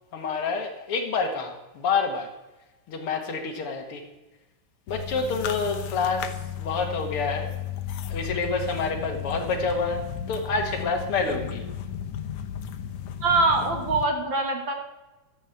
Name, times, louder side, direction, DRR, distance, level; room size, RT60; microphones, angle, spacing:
voice 1, 0.1-2.3 2.9-4.0 4.9-7.5 8.1-11.6, left 4 dB, 50° left, 4 dB, 2.2 m, -28 dB
sound 1, 4.9-14.0, left 9 dB, 70° left, 2.2 m, -34 dB
voice 2, 13.2-14.7, right 3 dB, 45° right, 3 dB, 2.1 m, -23 dB
12.5 x 10.5 x 7.9 m, 1.1 s
omnidirectional pair, 3.5 m